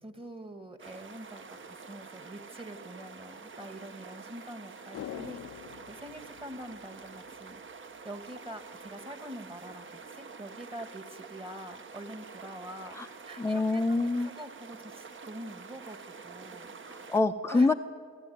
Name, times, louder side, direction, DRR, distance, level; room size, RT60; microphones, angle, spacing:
voice 1, 0.0-5.6 5.9-7.6 8.0-16.9 17.5-17.7, right 1 dB, 20° right, 9 dB, 1.7 m, -45 dB
sound 1, 0.8-17.2, right 5 dB, 40° right, 1.2 m, -47 dB
sound 2, 4.9-7.4 7.7-7.8, left 12 dB, 60° left, 0.6 m, -45 dB
voice 2, 13.4-14.3 16.9-17.7, left 3 dB, 10° left, 5 dB, 0.6 m, -26 dB
26.5 x 12.0 x 9.3 m, 2.2 s
cardioid pair, 90°, 30 cm